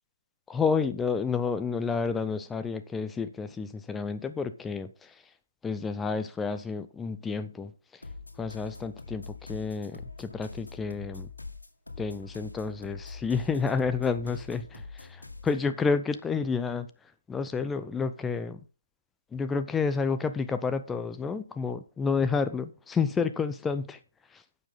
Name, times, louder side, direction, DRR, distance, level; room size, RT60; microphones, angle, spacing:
voice 1, 0.5-5.1 5.6-7.7 8.4-11.3 12.0-16.9 17.3-18.6 19.3-24.0, left 5 dB, 5° left, 0.4 m, -30 dB
sound 1, 8.0-15.6, left 3 dB, 80° left, 2.1 m, -44 dB
10.5 x 7.3 x 3.8 m
figure-of-eight pair, 145°, 0 cm